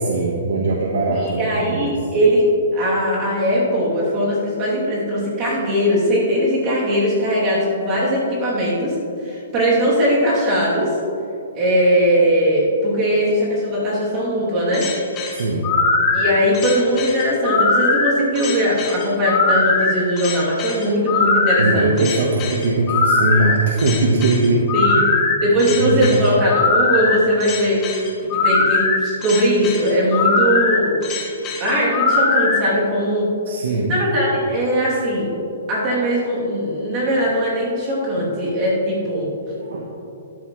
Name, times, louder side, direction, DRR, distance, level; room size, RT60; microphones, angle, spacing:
voice 1, 0.0-1.9 15.3-15.7 21.6-24.7 24.9-25.1 25.8-26.3 33.5-34.0 38.2-38.3 39.5-39.9, right 2 dB, 65° right, -1 dB, 1.3 m, -20 dB
voice 2, 1.2-11.0 11.6-15.0 16.1-22.1 24.7-25.0 25.4-27.9 28.3-31.0 31.6-33.3 33.9-35.3 35.7-39.3, equal, 20° right, -6 dB, 2.9 m, -19 dB
sound 1, 14.7-32.6, left 3 dB, 20° left, 1.3 m, -20 dB
12.5 x 12.5 x 3.2 m, 2.8 s
hypercardioid pair, 175°, 0 cm